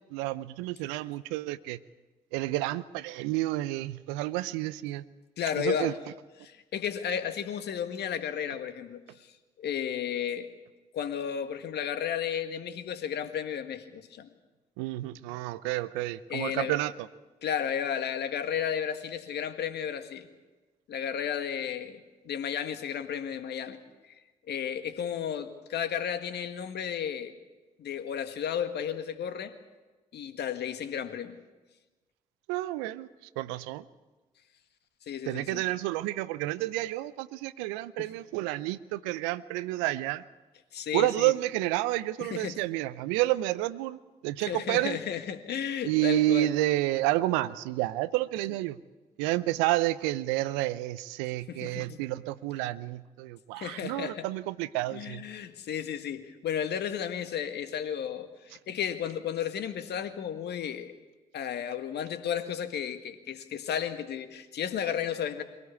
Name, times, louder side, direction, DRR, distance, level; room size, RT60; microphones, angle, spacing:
voice 1, 0.0-1.8 2.3-5.0 5.6-5.9 14.8-17.1 32.5-33.1 33.4-33.8 35.2-40.2 40.9-45.0 45.8-48.8 49.2-55.3, right 16 dB, 80° right, 16 dB, 0.6 m, -30 dB
voice 2, 5.4-5.9 6.4-10.5 10.9-14.3 16.3-16.7 17.4-20.3 20.9-22.0 22.3-24.2 24.5-27.3 27.8-29.6 30.1-31.4 35.0-35.6 38.0-38.1 40.7-41.3 42.2-42.6 44.4-46.5 51.5-52.0 53.6-54.3 54.9-60.9 61.3-65.4, left 8 dB, 65° left, 9 dB, 1.8 m, -33 dB
23.0 x 17.5 x 8.4 m, 1.2 s
hypercardioid pair, 40°, 19 cm